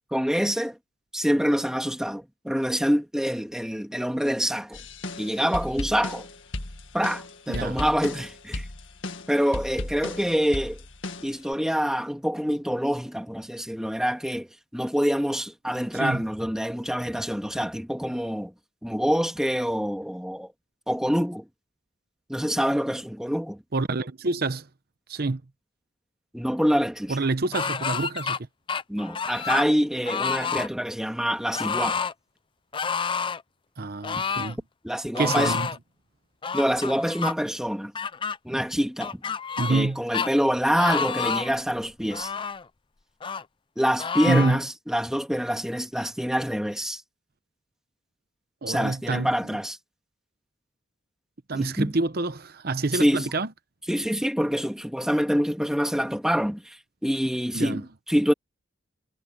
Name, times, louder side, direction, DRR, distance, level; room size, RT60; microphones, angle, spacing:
voice 1, 0.1-0.8 1.1-4.8 5.2-6.3 6.9-8.7 9.3-10.8 11.2-18.5 18.8-20.5 20.9-21.5 22.3-23.6 26.3-27.2 28.9-32.1 34.8-35.5 36.5-37.9 38.4-39.2 39.7-42.3 43.8-47.0 48.7-49.8 51.5-51.9 52.9-53.3 53.9-56.8 57.0-58.3, equal, 5° right, 2.4 m, -26 dB
sound 1, 4.7-11.5, left 2 dB, 80° left, 1.9 m, -35 dB
voice 2, 7.5-7.8 15.9-16.2 23.7-24.7 25.1-25.4 27.1-28.4 33.8-34.6 35.2-35.7 39.6-40.0 44.3-44.6 48.6-49.3 51.5-53.5 57.5-57.8, right 3 dB, 50° right, 0.9 m, -26 dB
sound 2, 27.5-28.4 28.7-29.7 30.0-30.7 31.5-32.1 32.7-33.4 34.0-34.5 35.1-35.8 36.4-37.3 37.9-38.4 39.0-39.9 40.1-40.3 40.8-41.6 42.1-42.6 43.2-43.4 44.0-44.6, left 6 dB, 25° left, 0.5 m, -29 dB
head